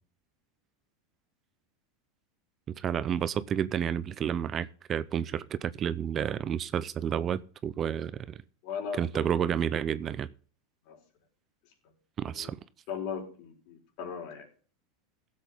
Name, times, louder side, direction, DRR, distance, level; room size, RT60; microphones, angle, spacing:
voice 1, 2.7-8.4 8.9-10.3 12.2-12.6, right 9 dB, 30° right, 0.6 m, -30 dB
voice 2, 8.6-9.3 10.9-11.0 12.3-12.5 12.9-14.5, left 7 dB, 60° left, 4.7 m, -38 dB
16.5 x 7.7 x 3.6 m
supercardioid pair, 125°, 0 cm